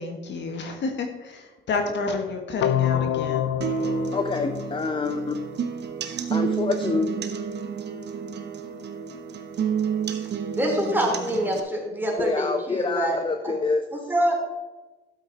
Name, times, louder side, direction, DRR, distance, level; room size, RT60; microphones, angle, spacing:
voice 1, 0.0-3.5, left 3 dB, 65° left, 4 dB, 1.7 m, -30 dB
sound 1, 2.6-5.6, left 10 dB, 85° left, 0.5 m, -27 dB
sound 2, 3.6-11.6, right 7 dB, 60° right, 1.1 m, -30 dB
voice 2, 4.1-5.4 6.3-7.1 12.2-13.8, left 4 dB, 25° left, 7 dB, 0.8 m, -26 dB
voice 3, 10.5-13.2 13.9-14.4, right 1 dB, 10° right, -1 dB, 3.4 m, -25 dB
12.0 x 8.1 x 4.2 m, 1.2 s
cardioid pair, 90°, 20 cm